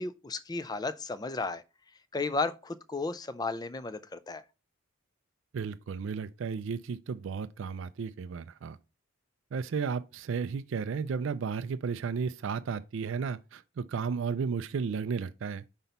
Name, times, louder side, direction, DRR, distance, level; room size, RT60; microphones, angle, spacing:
voice 1, 0.0-1.6 2.1-4.4, left 3 dB, 20° left, 0.4 m, -34 dB
voice 2, 5.5-8.8 9.5-15.6, right 5 dB, 60° right, 0.3 m, -33 dB
5.9 x 4.0 x 5.3 m
head